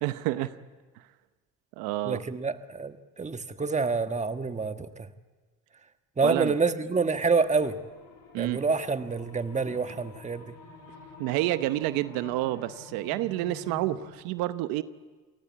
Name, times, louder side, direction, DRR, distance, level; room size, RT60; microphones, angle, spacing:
voice 1, 0.0-0.6 1.8-2.2 6.2-6.5 8.3-8.6 11.2-14.8, right 16 dB, 85° right, 13 dB, 0.9 m, -29 dB
voice 2, 2.0-5.1 6.2-7.8 8.4-10.5, right 4 dB, 20° right, 9 dB, 1.4 m, -27 dB
sound 1, 7.4-14.2, left 4 dB, 75° left, 6.5 m, -49 dB
28.0 x 19.0 x 8.6 m, 1.4 s
supercardioid pair, 80°, 34 cm